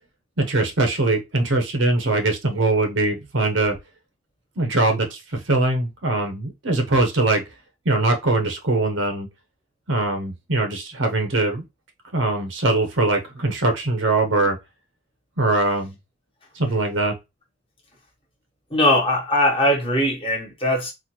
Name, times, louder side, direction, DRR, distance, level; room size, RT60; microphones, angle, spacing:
voice 1, 0.4-3.8 4.6-7.4 7.8-9.3 9.9-11.6 12.1-14.6 15.4-16.0 16.5-17.1, right 2 dB, 70° right, 0.9 m, -22 dB
voice 2, 18.7-20.9, left 1 dB, 25° left, 1.3 m, -20 dB
4.0 x 2.5 x 2.9 m
head